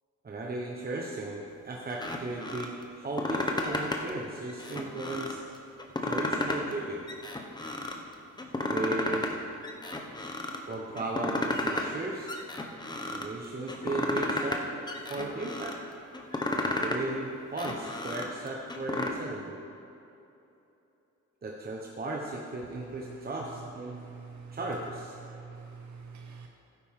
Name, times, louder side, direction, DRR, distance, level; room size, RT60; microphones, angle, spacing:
voice 1, 0.2-5.4 6.0-7.0 8.7-9.3 10.7-12.4 13.1-14.8 15.1-15.8 16.6-19.6 21.4-24.0 24.5-25.2, right 2 dB, 30° right, -1 dB, 1.1 m, -36 dB
sound 1, 1.9-2.7 3.0-4.1 4.5-5.4 5.8-6.8 7.1-8.0 8.4-9.3 9.6-10.6 11.0-12.0 12.3-13.3 13.7-14.6 14.9-15.7 16.1-17.0 17.4-19.1, left 2 dB, 15° left, 1.0 m, -32 dB
voice 2, 23.9-24.6 25.2-26.5, right 5 dB, 70° right, 2 dB, 1.0 m, -46 dB
12.0 x 9.7 x 3.8 m, 2.8 s
cardioid pair, 90°, 30 cm